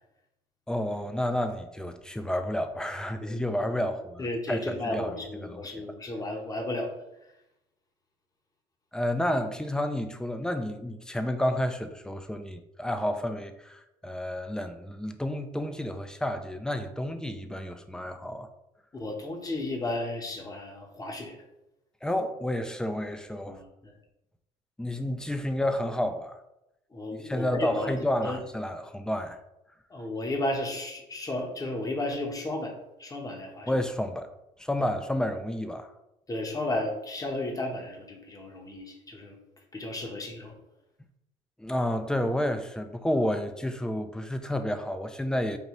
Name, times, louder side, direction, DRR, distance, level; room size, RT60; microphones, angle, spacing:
voice 1, 0.7-5.1 5.4-5.9 8.9-18.5 22.0-23.6 24.8-26.4 27.2-29.4 33.7-34.3 34.6-35.9 41.6-45.6, left 1 dB, 5° left, 0.4 m, -30 dB
voice 2, 4.2-6.9 18.9-21.4 23.5-23.9 26.9-27.9 28.2-28.4 29.9-32.7 33.0-33.7 36.3-39.4 39.7-40.6, left 1 dB, 25° left, 0.9 m, -33 dB
5.3 x 2.7 x 3.0 m
cardioid pair, 95°, 15 cm